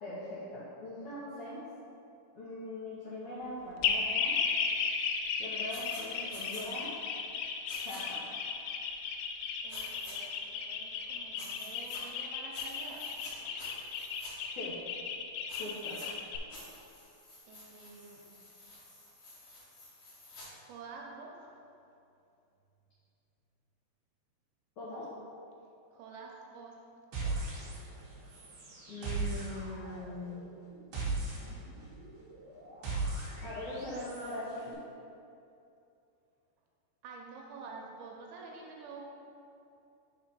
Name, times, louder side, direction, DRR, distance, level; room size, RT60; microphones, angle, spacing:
voice 1, 0.0-1.6 2.3-4.3 5.4-6.9 7.8-8.3 14.5-14.8 15.6-16.0 24.8-25.1 28.9-30.4 33.4-34.8, left 1 dB, 75° left, -10 dB, 1.7 m, -41 dB
sound 1, 3.8-16.4, left 6 dB, 90° left, 2.6 m, -35 dB
sound 2, 5.7-6.0 6.3-6.6 7.7-8.0 9.7-10.1 11.3-12.0 12.5-13.3 13.6-14.3 15.5-16.1 16.5-20.5, left 1 dB, 55° left, 1.7 m, -50 dB
voice 2, 9.6-13.2 17.5-18.3 20.7-21.5 25.9-26.8 31.4-31.7 37.0-39.1, right 4 dB, 80° right, -1 dB, 2.5 m, -49 dB
sound 3, 27.1-28.0 28.3-34.3, right 2 dB, 65° right, 1.5 m, -38 dB
5.7 x 4.4 x 5.5 m, 2.7 s
omnidirectional pair, 4.7 m